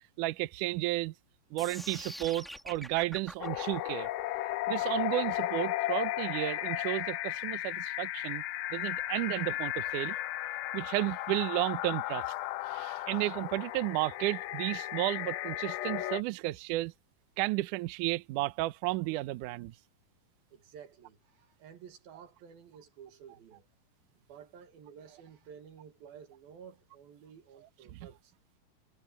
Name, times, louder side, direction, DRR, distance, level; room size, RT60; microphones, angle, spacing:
voice 1, 0.2-1.1 1.5-4.1 4.7-8.4 8.7-10.2 10.7-12.2 12.7-16.9 17.4-19.7 27.9-28.0, right 18 dB, 85° right, 1.8 m, -33 dB
sound 1, 1.6-7.6, equal, ahead, 1.6 m, -46 dB
sound 2, 3.4-16.2, left 15 dB, 75° left, 2.6 m, -35 dB
voice 2, 20.5-23.7 24.3-28.3, right 7 dB, 70° right, 3.8 m, -52 dB
omnidirectional pair, 4.5 m